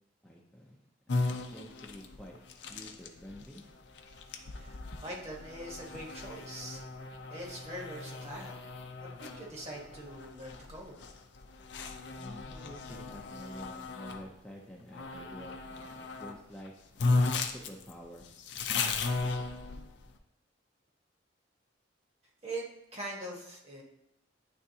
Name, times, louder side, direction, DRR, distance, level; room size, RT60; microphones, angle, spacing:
voice 1, 0.2-2.4 2.7-3.6 12.2-16.9 17.4-18.3, equal, 5° left, -3 dB, 0.6 m, -49 dB
sound 1, 1.1-14.3 14.9-16.4 16.6-16.7 17.0-20.1, left 3 dB, 60° left, 0.5 m, -36 dB
voice 2, 4.5-6.8 7.3-8.6 9.2-11.0 22.4-22.7 22.9-23.8, right 1 dB, 35° right, -2 dB, 1.2 m, -42 dB
9.5 x 3.5 x 2.8 m, 0.83 s
head